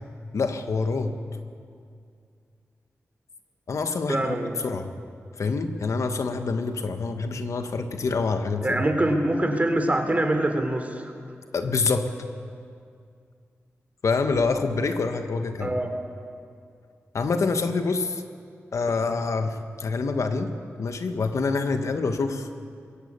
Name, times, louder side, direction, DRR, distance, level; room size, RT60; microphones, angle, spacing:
voice 1, 0.3-1.1 3.7-4.3 4.6-4.9 5.4-8.8 11.5-12.1 14.0-15.7 17.1-18.2 18.7-22.5, left 4 dB, 75° left, 7 dB, 1.6 m, -26 dB
voice 2, 4.1-4.6 8.6-11.0 15.6-15.9 19.1-19.2, right 1 dB, 30° right, 6 dB, 3.6 m, -24 dB
22.0 x 17.5 x 8.4 m, 2.3 s
cardioid pair, 50°, 5 cm